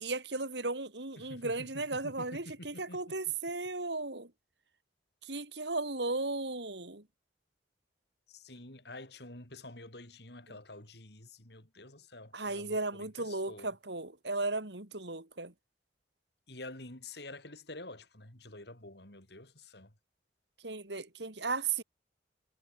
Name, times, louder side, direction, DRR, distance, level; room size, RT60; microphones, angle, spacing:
voice 1, 0.0-4.3 5.2-7.0 12.3-15.5 20.6-21.8, right 3 dB, 70° right, 3.5 m, -35 dB
voice 2, 1.2-3.3 8.3-13.8 16.5-19.9, left 2 dB, 60° left, 5.0 m, -49 dB
head